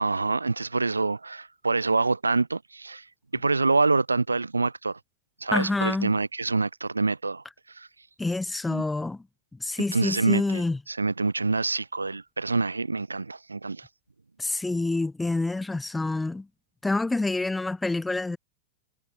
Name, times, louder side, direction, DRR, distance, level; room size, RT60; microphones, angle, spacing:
voice 1, 0.0-3.0 3.3-5.0 5.4-7.4 7.7-7.9 8.7-8.8 9.9-10.6 10.9-13.9, right 3 dB, 85° right, 0.4 m, -26 dB
voice 2, 5.5-6.1 8.2-9.2 9.6-10.8 14.4-16.5 16.8-18.4, left 2 dB, 10° left, 1.0 m, -27 dB
figure-of-eight pair, 95°, 0 cm